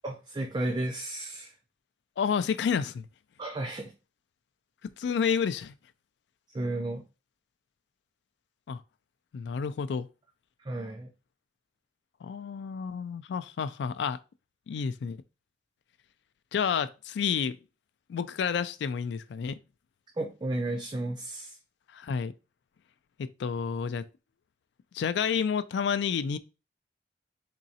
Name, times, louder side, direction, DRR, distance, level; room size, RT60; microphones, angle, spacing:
voice 1, 0.0-1.5 3.4-3.9 6.5-7.0 10.6-11.1 20.2-21.6, right 1 dB, 25° right, 0.4 m, -33 dB
voice 2, 2.2-3.1 5.0-5.7 8.7-8.8 9.3-10.1 12.2-14.2 14.7-15.2 16.5-17.6 18.1-19.6 21.9-22.3 23.2-24.1 24.9-26.4, left 6 dB, 65° left, 0.3 m, -30 dB
3.7 x 3.0 x 2.7 m
head